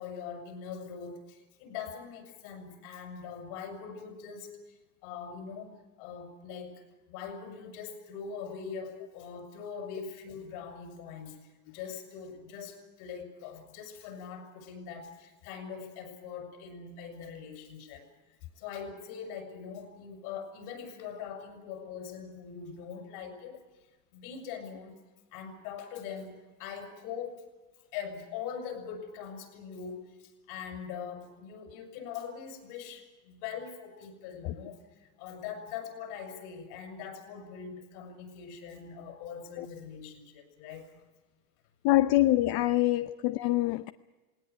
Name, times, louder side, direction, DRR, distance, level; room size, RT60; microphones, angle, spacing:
voice 1, 0.0-11.4 11.7-18.1 18.6-23.6 24.1-25.0 25.3-27.4 27.9-40.9, left 6 dB, 75° left, 6.2 m, -42 dB
voice 2, 41.8-43.9, left 16 dB, 60° left, 0.8 m, -25 dB
19.0 x 18.5 x 9.8 m
supercardioid pair, 105°, 43 cm